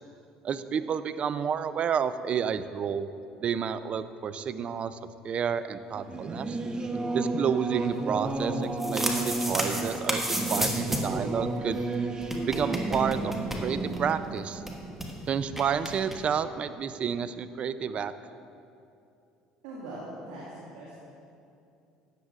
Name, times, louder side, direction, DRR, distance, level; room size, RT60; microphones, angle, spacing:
voice 1, 0.4-3.1 3.4-5.0 5.2-6.6 7.1-11.8 12.5-13.3 13.6-14.6 15.3-18.1, right 7 dB, 45° right, 13 dB, 0.4 m, -30 dB
Singing / Musical instrument, 5.9-16.0, right 2 dB, 30° right, 0.9 m, -33 dB
sound 1, 8.6-11.2 11.5-11.6 11.8-11.9 12.2-14.1 14.4-14.5 14.7-15.1 15.6-16.2, right 1 dB, 10° right, 1.4 m, -32 dB
voice 2, 19.6-20.9, right 1 dB, 80° right, -6 dB, 1.8 m, -41 dB
13.5 x 9.4 x 2.4 m, 2.6 s
hypercardioid pair, 75°, 3 cm